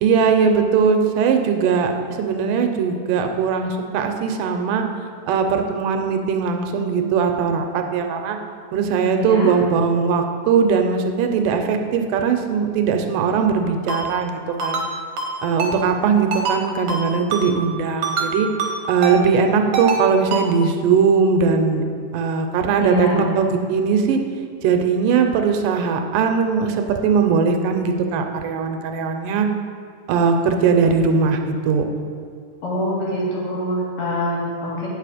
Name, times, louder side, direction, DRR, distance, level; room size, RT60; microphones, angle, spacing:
voice 1, 0.0-4.8 5.3-8.4 8.7-14.8 15.4-18.5 18.9-21.8 22.1-24.2 24.6-29.5 30.1-31.8, right 5 dB, 80° right, 5 dB, 2.1 m, -20 dB
voice 2, 9.2-9.5 22.8-23.3 32.6-34.9, equal, 80° left, -6 dB, 3.8 m, -24 dB
Ringtone, 13.9-14.0 14.6-14.9 15.2-15.3 15.6-15.7 16.3-16.6 16.9-17.0 17.3-17.4 18.0-18.3 18.6-18.7 19.0-19.2 19.7-20.0 20.3-20.4, right 4 dB, 65° right, 1.5 m, -23 dB
8.8 x 6.7 x 4.9 m, 2.2 s
omnidirectional pair, 3.9 m